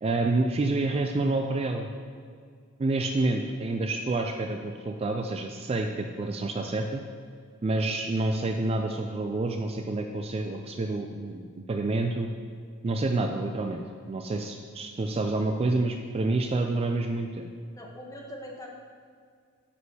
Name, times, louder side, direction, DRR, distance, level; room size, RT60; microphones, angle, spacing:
voice 1, 0.0-1.9 2.8-7.0 7.6-12.3 12.8-17.5, right 2 dB, 30° right, 4 dB, 0.3 m, -28 dB
voice 2, 17.8-18.7, equal, 15° left, -1 dB, 1.0 m, -42 dB
9.5 x 6.4 x 2.8 m, 2.1 s
head